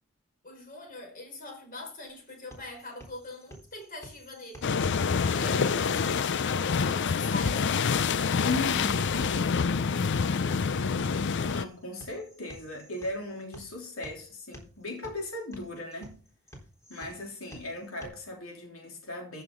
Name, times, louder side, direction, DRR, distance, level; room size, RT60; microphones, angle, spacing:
voice 1, 0.4-9.5, left 2 dB, 45° left, 5.2 m, -43 dB
sound 1, 2.1-18.1, equal, 15° left, 3.9 m, -52 dB
sound 2, 4.6-11.6, left 5 dB, 60° left, 0.5 m, -27 dB
voice 2, 8.4-9.3 11.5-16.2 16.9-19.4, left 2 dB, 85° left, 3.3 m, -37 dB
14.5 x 7.0 x 3.8 m
head